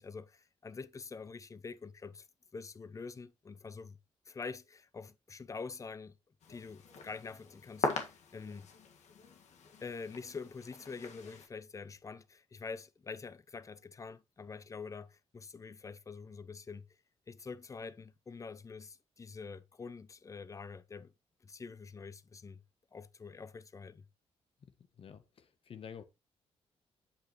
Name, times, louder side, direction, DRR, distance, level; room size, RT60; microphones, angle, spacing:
voice 1, 0.0-2.3 2.5-4.0 4.3-6.2 6.5-8.7 9.8-16.9 17.3-21.1 21.4-22.6 22.9-24.0, left 4 dB, 30° left, 0.6 m, -46 dB
sound 1, 6.4-11.5, left 4 dB, 85° left, 1.7 m, -41 dB
voice 2, 24.6-26.0, left 7 dB, 55° left, 0.9 m, -50 dB
8.4 x 7.9 x 3.0 m
cardioid pair, 120°, 12 cm